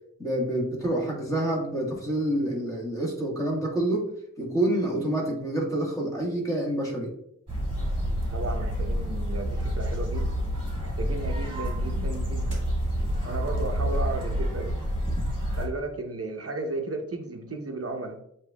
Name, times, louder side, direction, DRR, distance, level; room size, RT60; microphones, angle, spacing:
voice 1, 0.2-4.0 4.4-7.1, right 1 dB, 10° left, -4 dB, 1.6 m, -27 dB
sound 1, 7.5-15.7, equal, 15° right, 1.9 m, -28 dB
voice 2, 8.3-10.3 10.8-12.6 13.2-14.8 15.6-18.2, right 2 dB, 50° right, 4 dB, 0.8 m, -34 dB
7.9 x 2.8 x 2.3 m, 0.73 s
wide cardioid pair, 100°, 31 cm